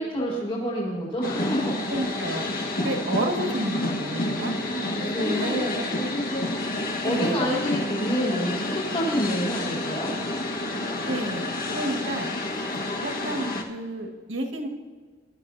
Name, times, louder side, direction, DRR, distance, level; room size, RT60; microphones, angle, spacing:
voice 1, 0.0-1.8 4.6-6.4 7.0-10.1, equal, 30° left, -5 dB, 3.5 m, -28 dB
sound 1, 1.2-13.6, left 2 dB, 50° left, 1.5 m, -29 dB
voice 2, 1.9-2.5 2.8-4.6 5.0-5.6 7.0-7.6 11.0-11.4 11.7-12.3 13.0-14.7, right 1 dB, 80° right, 1 dB, 2.0 m, -31 dB
22.5 x 12.5 x 2.8 m, 1.5 s
head